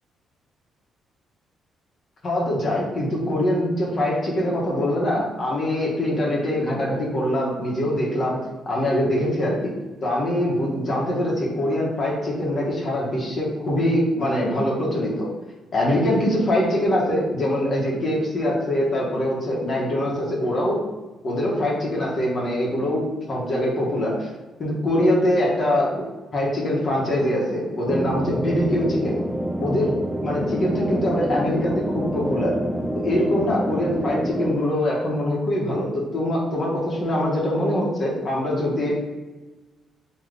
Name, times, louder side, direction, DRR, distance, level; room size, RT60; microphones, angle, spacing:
voice 1, 2.2-9.7 10.0-15.3 15.7-20.8 21.2-24.3 24.6-26.0 26.3-29.2 29.6-29.9 30.2-32.6 32.9-38.9, left 1 dB, 45° left, -4 dB, 1.3 m, -23 dB
sound 1, 27.9-34.5, right 1 dB, 5° right, 0.3 m, -27 dB
3.6 x 3.1 x 3.4 m, 1.2 s
cardioid pair, 90°, 0 cm